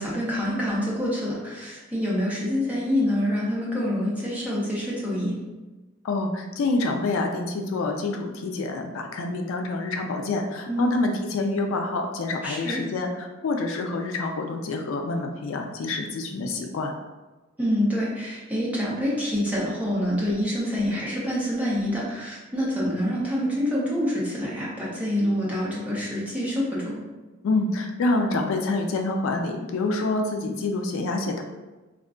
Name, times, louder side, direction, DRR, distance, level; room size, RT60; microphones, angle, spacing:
voice 1, 0.0-5.3 10.7-10.9 12.4-12.8 17.6-27.0, equal, 5° right, -7 dB, 0.6 m, -26 dB
voice 2, 6.0-16.9 27.4-31.4, left 2 dB, 65° left, 3 dB, 0.3 m, -27 dB
2.3 x 2.2 x 3.5 m, 1.2 s
head